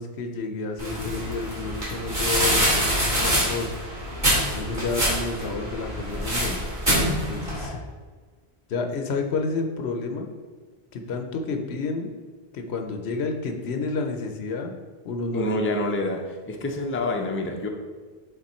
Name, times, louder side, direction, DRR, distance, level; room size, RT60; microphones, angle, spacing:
voice 1, 0.0-3.7 4.5-6.6 7.3-7.8 8.7-10.3 10.9-12.1 12.5-14.8 15.0-15.5, left 3 dB, 85° left, 4 dB, 1.0 m, -30 dB
sound 1, 0.8-7.7, equal, 50° right, 2.3 m, -25 dB
voice 2, 15.3-17.7, left 1 dB, 15° left, 2 dB, 0.5 m, -27 dB
6.7 x 3.7 x 4.3 m, 1.5 s
omnidirectional pair, 1.1 m